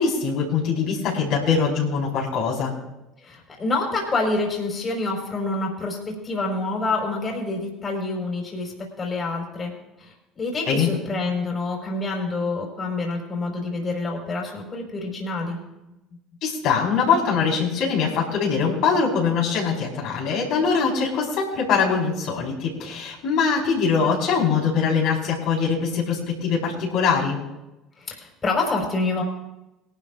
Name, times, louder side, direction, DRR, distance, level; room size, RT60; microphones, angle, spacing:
voice 1, 0.0-2.7 10.6-10.9 16.4-27.4, left 5 dB, 55° left, -3 dB, 4.5 m, -22 dB
voice 2, 3.2-9.7 10.0-15.6 28.0-29.2, left 3 dB, 30° left, 0 dB, 4.7 m, -27 dB
22.5 x 12.0 x 2.5 m, 0.96 s
figure-of-eight pair, 60°, 0 cm